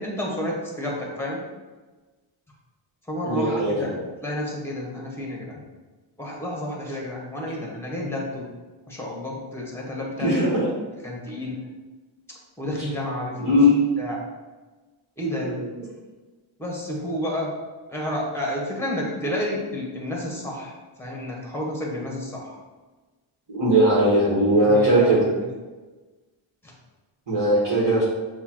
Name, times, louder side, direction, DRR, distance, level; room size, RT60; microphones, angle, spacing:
voice 1, 0.0-1.4 3.1-3.9 4.2-5.6 6.2-8.5 8.9-10.5 11.0-11.6 12.6-13.6 14.0-14.2 15.2-15.7 16.6-17.5 17.9-22.6 24.6-25.3 26.6-26.7, left 1 dB, 5° left, -2 dB, 1.1 m, -30 dB
voice 2, 3.2-3.9 10.2-10.5 13.4-13.7 15.2-15.8 23.5-25.2 27.3-28.0, equal, 55° right, -9 dB, 1.5 m, -19 dB
6.6 x 2.4 x 3.0 m, 1.3 s
cardioid pair, 110°, 48 cm